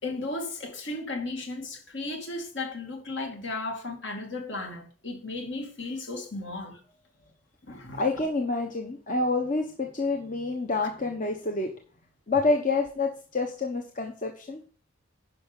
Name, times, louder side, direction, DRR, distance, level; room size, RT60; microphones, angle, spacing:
voice 1, 0.0-6.8 7.7-8.0, left 2 dB, 60° left, 2.5 m, -35 dB
voice 2, 8.0-11.7 12.3-14.6, left 3 dB, 40° left, 1.1 m, -28 dB
10.5 x 5.8 x 5.4 m
head